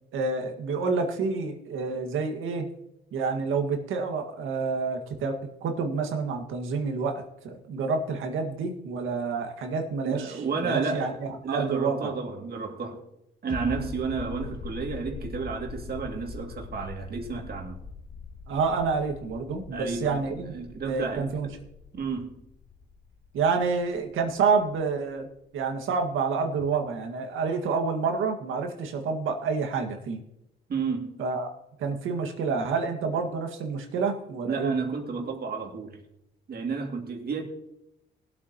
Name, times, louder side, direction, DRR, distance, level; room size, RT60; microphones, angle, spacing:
voice 1, 0.1-2.7 3.1-12.1 18.5-20.6 20.8-21.5 23.3-25.3 25.5-30.2 31.2-31.5 31.8-34.8, right 4 dB, 85° right, 1.8 m, -28 dB
voice 2, 10.0-11.1 11.4-13.0 13.4-17.8 19.7-20.2 20.5-21.5 21.9-22.4 30.7-31.2 34.4-36.0 36.5-37.4, right 5 dB, 50° right, 2.4 m, -31 dB
sound 1, 13.5-24.8 25.1-25.2, left 5 dB, 40° left, 2.0 m, -42 dB
20.5 x 8.4 x 3.0 m
cardioid pair, 90°, 20 cm